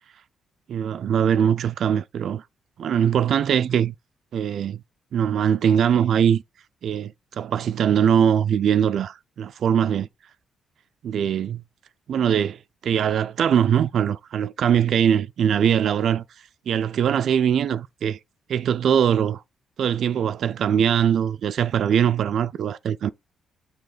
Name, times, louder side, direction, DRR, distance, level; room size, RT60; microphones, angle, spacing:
voice 1, 0.7-2.4 2.8-3.9 4.3-4.8 5.1-6.4 6.8-10.1 11.0-11.6 12.1-16.2 16.7-18.2 18.5-19.4 19.8-23.1, right 8 dB, 65° right, 0.4 m, -21 dB
6.9 x 3.5 x 4.9 m
cardioid pair, 90°, 0 cm